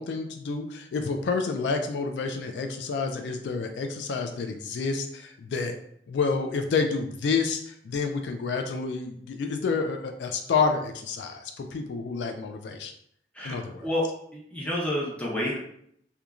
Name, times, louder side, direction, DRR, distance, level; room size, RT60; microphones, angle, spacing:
voice 1, 0.0-5.8 6.1-12.9 13.4-13.9, left 4 dB, 80° left, 6 dB, 0.3 m, -29 dB
voice 2, 13.3-14.0 14.3-15.6, left 1 dB, 10° left, -5 dB, 0.7 m, -29 dB
2.9 x 2.2 x 2.4 m, 0.69 s
head